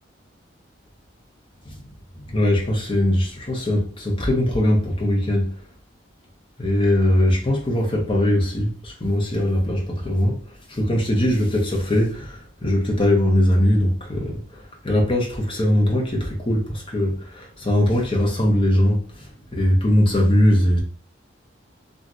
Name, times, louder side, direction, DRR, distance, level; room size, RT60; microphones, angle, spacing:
voice 1, 2.2-5.5 6.6-10.4 10.7-19.0 19.5-20.8, left 1 dB, 30° left, 0.8 m, -20 dB
3.0 x 2.4 x 2.6 m
head